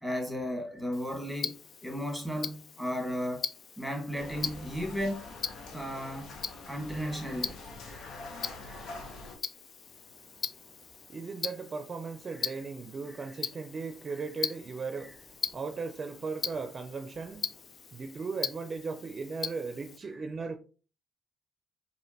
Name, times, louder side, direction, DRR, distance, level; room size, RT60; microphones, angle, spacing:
voice 1, 0.0-3.5 3.8-5.3 5.7-6.3 6.7-8.2 8.6-8.9 12.4-12.6 13.1-13.3 15.0-15.1 20.1-20.2, equal, 10° left, 1.5 m, -35 dB
Tick-tock, 0.9-20.0, left 6 dB, 50° left, 0.3 m, -41 dB
sound 1, 4.1-9.4, left 3 dB, 80° left, 1.0 m, -45 dB
voice 2, 10.1-17.6 17.9-20.6, right 4 dB, 40° right, 0.5 m, -38 dB
5.0 x 2.5 x 2.8 m
cardioid pair, 90°, 0 cm